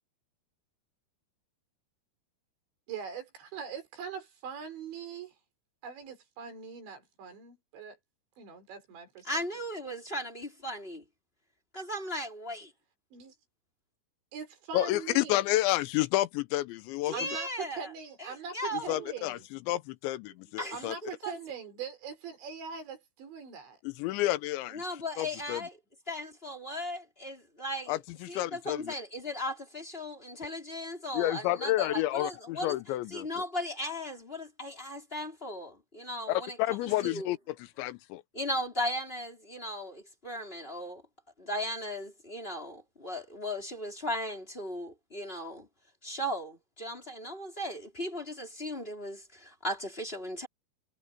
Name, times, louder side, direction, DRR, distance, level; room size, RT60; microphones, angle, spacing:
voice 1, 2.9-3.2 3.5-5.3 5.8-8.0 8.4-9.3 13.1-13.3 14.3-15.4 17.1-19.5 20.4-23.8, right 6 dB, 80° right, 6.8 m, -42 dB
voice 2, 9.2-11.0 11.7-12.7 17.0-17.9 18.2-19.1 20.6-21.3 24.7-25.8 26.1-28.0 28.3-32.8 33.1-36.6 36.8-37.3 38.3-41.0 41.4-45.7 46.0-50.5, left 1 dB, 15° left, 4.2 m, -37 dB
voice 3, 14.7-17.1 18.7-21.0 23.8-24.8 25.2-25.6 27.9-28.9 31.1-33.4 36.3-38.2, left 16 dB, 85° left, 3.1 m, -30 dB
omnidirectional pair, 5.1 m